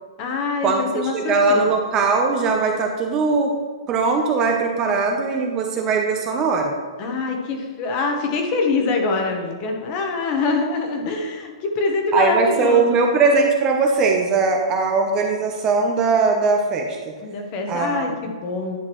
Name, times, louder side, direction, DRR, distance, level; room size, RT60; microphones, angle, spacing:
voice 1, 0.2-1.7 7.0-13.0 17.2-18.8, left 3 dB, 25° left, 3 dB, 0.9 m, -24 dB
voice 2, 1.1-3.5 3.9-6.7 12.1-17.1 17.7-18.0, right 4 dB, 20° right, 2 dB, 0.6 m, -20 dB
10.5 x 5.9 x 3.0 m, 1.5 s
hypercardioid pair, 170°, 3 cm